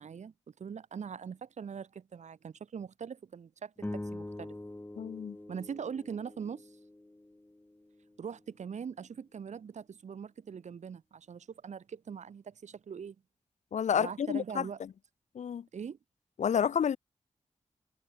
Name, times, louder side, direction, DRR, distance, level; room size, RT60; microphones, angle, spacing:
voice 1, 0.0-4.5 5.5-6.7 8.2-13.1 14.0-14.8 15.7-16.0, right 7 dB, 80° right, 1.6 m, -42 dB
sound 1, 3.8-8.3, left 1 dB, 15° left, 2.9 m, -44 dB
voice 2, 5.0-5.4 13.7-14.6 15.3-15.6 16.4-17.0, left 8 dB, 80° left, 0.6 m, -29 dB
wide cardioid pair, 85°, 12 cm